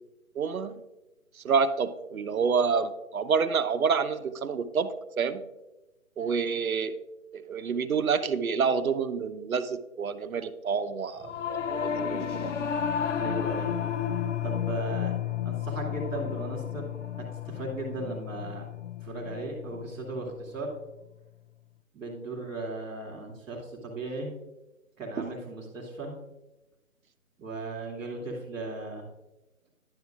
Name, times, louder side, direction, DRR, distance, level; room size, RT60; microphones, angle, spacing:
voice 1, 0.3-0.8 1.4-5.4 6.2-7.0 7.3-12.5 25.2-25.3, right 5 dB, 80° right, 11 dB, 0.8 m, -28 dB
Singing / Musical instrument, 11.2-20.8, left 8 dB, 60° left, 0.6 m, -32 dB
voice 2, 13.1-13.7 14.4-15.1 15.4-16.9 17.2-18.7 19.0-20.7 21.9-24.3 25.0-26.2 27.4-29.0, right 2 dB, ahead, -16 dB, 0.7 m, -36 dB
10.5 x 7.4 x 2.3 m, 1.0 s
figure-of-eight pair, 155°, 42 cm